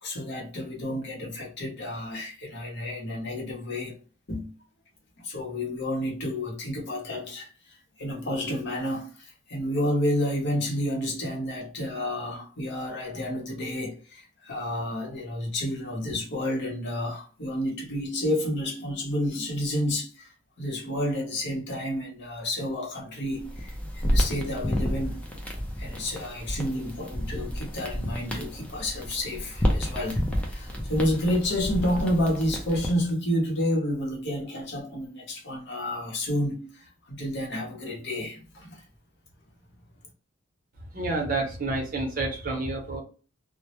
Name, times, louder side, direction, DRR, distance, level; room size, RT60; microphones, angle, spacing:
voice 1, 0.0-4.0 4.3-4.5 5.2-7.5 8.0-20.3 20.6-25.2 25.8-38.8, left 1 dB, 55° left, 0.8 m, -30 dB
sound 1, 23.3-33.1, equal, 5° left, 0.4 m, -30 dB
voice 2, 40.9-43.0, right 2 dB, 45° right, 0.7 m, -29 dB
2.1 x 2.0 x 2.9 m
head